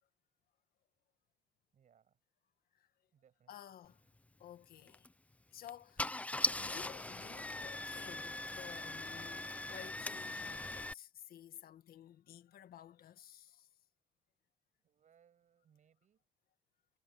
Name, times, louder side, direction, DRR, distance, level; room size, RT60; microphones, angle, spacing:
voice 1, 1.7-2.2 3.1-3.8 14.8-16.2, right 8 dB, 45° right, 8.0 m, -70 dB
voice 2, 3.5-4.0 4.4-5.1 5.5-6.1 6.6-13.7, left 11 dB, 60° left, 1.8 m, -53 dB
Car / Engine starting, 4.9-5.1 5.7-5.8 6.0-10.9, left 2 dB, 10° left, 0.6 m, -40 dB
cardioid pair, 110°, 17 cm